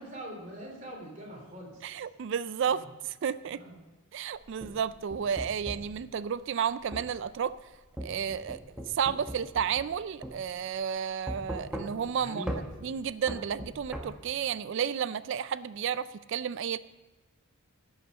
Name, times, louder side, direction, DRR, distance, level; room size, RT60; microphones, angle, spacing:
voice 1, 0.0-2.0 2.7-2.9 3.5-3.8 12.2-12.6, right 1 dB, 35° right, -1 dB, 2.9 m, -43 dB
voice 2, 1.8-3.6 4.1-7.5 8.0-12.5 12.8-16.8, right 7 dB, 55° right, 16 dB, 0.3 m, -32 dB
sound 1, 4.3-5.9 6.9-7.1 8.0-10.0 10.2-10.4 11.3-12.1 12.5-12.7 13.3-14.1, equal, 5° right, 1.0 m, -38 dB
17.0 x 5.7 x 5.2 m, 1.2 s
head